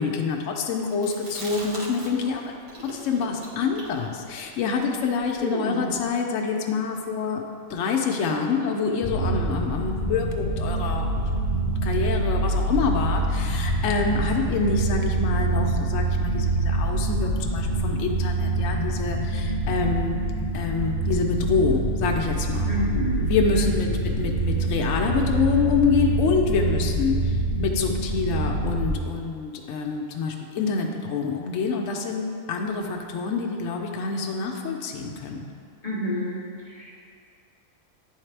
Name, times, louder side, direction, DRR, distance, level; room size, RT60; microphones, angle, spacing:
voice 1, 0.0-2.5 2.9-7.4 7.7-20.2 20.5-22.8 23.2-23.9 24.2-35.4, left 5 dB, 70° left, 1 dB, 0.9 m, -26 dB
Chewing mastication, 0.9-2.4 2.7-6.1, right 1 dB, 25° right, 0.9 m, -36 dB
sound 1, 9.0-28.9, right 2 dB, 50° left, 0.4 m, -25 dB
voice 2, 22.7-23.2 23.5-23.7 35.8-36.9, equal, 35° left, -5 dB, 0.8 m, -28 dB
9.7 x 3.6 x 3.3 m, 2.3 s
omnidirectional pair, 1.4 m